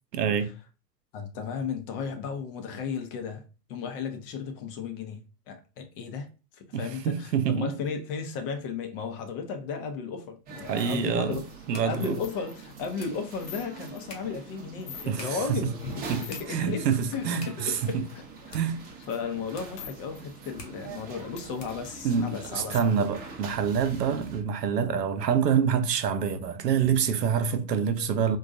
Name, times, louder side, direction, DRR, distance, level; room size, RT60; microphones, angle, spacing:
voice 1, 0.1-0.5 6.7-7.7 10.7-11.4 11.7-12.2 15.1-15.6 16.1-18.0 18.5-18.8 22.0-28.4, right 7 dB, 80° right, 0.7 m, -26 dB
voice 2, 1.1-3.4 3.7-6.3 6.5-11.4 11.8-18.2 19.1-23.0, left 5 dB, 35° left, 0.7 m, -35 dB
sound 1, 10.4-22.0, left 3 dB, 90° left, 1.1 m, -51 dB
sound 2, 10.5-24.4, right 4 dB, 20° right, 0.7 m, -44 dB
sound 3, 12.2-15.4 15.7-16.8 17.2-20.0 20.2-20.3 20.6-22.9 23.3-23.4 23.6-25.6, left 9 dB, 70° left, 0.7 m, -49 dB
3.9 x 2.2 x 2.6 m
hypercardioid pair, 110°, 48 cm